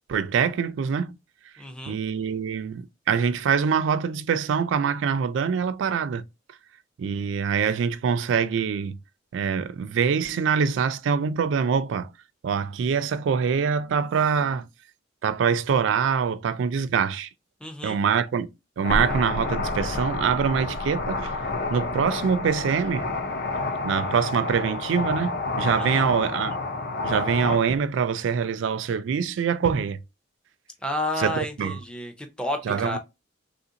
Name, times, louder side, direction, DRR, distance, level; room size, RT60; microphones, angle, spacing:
voice 1, 0.1-1.2 1.9-6.2 7.0-9.0 9.3-12.1 12.4-14.7 15.2-17.3 17.8-18.5 18.8-21.3 21.7-23.1 23.8-26.6 27.0-30.0 31.2-31.8 32.7-33.0, right 6 dB, 65° right, 0.3 m, -24 dB
voice 2, 1.6-2.0 17.6-18.0 25.8-26.1 30.8-33.0, left 1 dB, 5° left, 0.5 m, -31 dB
sound 1, 18.8-27.6, left 3 dB, 55° left, 0.6 m, -30 dB
Explosion, 18.9-23.6, equal, 80° left, 1.2 m, -36 dB
3.3 x 2.5 x 2.7 m
head